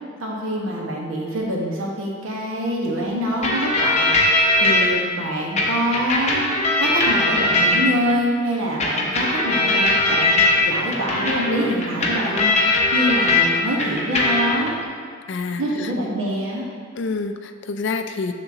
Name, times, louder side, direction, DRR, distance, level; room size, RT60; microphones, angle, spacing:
voice 1, 0.2-4.1 4.6-6.5 6.8-12.5 12.9-14.8 15.6-16.6, equal, 90° right, -3 dB, 1.3 m, -25 dB
sound 1, 3.4-4.9 5.6-8.1 8.8-13.5 13.8-14.7, left 2 dB, 35° left, 0.9 m, -20 dB
voice 2, 15.3-15.9 16.9-18.3, left 4 dB, 60° left, 8 dB, 0.4 m, -27 dB
6.8 x 6.7 x 2.8 m, 2.1 s
head